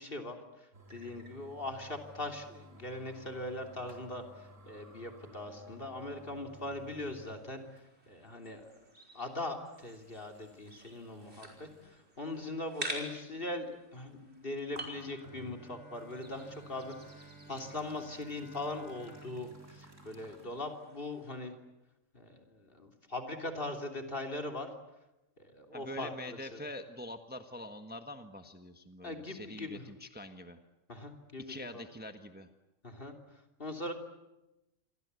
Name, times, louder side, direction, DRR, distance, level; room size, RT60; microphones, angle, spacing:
voice 1, 0.0-7.6 8.1-8.7 9.1-21.5 22.1-24.7 25.4-26.6 29.0-29.8 30.9-31.8 32.8-33.1 33.6-33.9, left 2 dB, 45° left, 4 dB, 3.4 m, -41 dB
sound 1, 0.7-7.4 7.8-7.9 8.6-8.7 9.8-11.9 12.4-12.5 14.6-15.6 15.9-20.5, left 1 dB, 70° right, 4.6 m, -56 dB
sound 2, 6.2-21.4, right 1 dB, 50° right, 5.4 m, -49 dB
Bowed string instrument, 14.9-21.1, right 3 dB, 10° left, 4.8 m, -55 dB
voice 2, 25.7-30.6 31.4-32.5, left 1 dB, 10° right, 7 dB, 1.3 m, -45 dB
28.0 x 24.0 x 8.3 m, 0.97 s
omnidirectional pair, 1.4 m